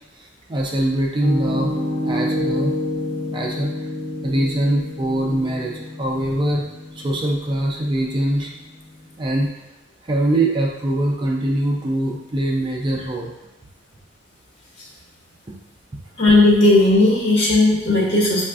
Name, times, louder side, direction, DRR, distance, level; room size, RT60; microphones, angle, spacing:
voice 1, 0.2-2.7 3.3-3.9 4.2-6.7 6.9-8.5 9.2-9.5 10.0-13.3, right 1 dB, 25° right, -1 dB, 0.4 m, -23 dB
Piano, 1.2-9.1, left 1 dB, 25° left, 0.5 m, -28 dB
voice 2, 16.2-18.4, left 2 dB, 60° left, -4 dB, 1.3 m, -15 dB
5.6 x 2.4 x 2.4 m, 1.0 s
head